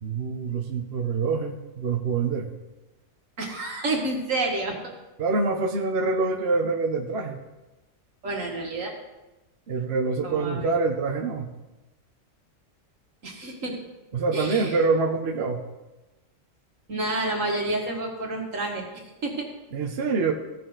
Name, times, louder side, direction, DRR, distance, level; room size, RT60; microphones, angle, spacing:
voice 1, 0.0-2.5 5.2-7.4 9.7-11.5 14.1-15.6 19.7-20.3, right 4 dB, 55° right, 1 dB, 1.1 m, -25 dB
voice 2, 3.4-4.8 8.2-8.9 10.2-10.7 13.2-13.7 14.3-14.7 16.9-19.5, right 2 dB, 80° right, 0 dB, 2.2 m, -29 dB
16.0 x 6.2 x 3.9 m, 1.0 s
omnidirectional pair, 1.3 m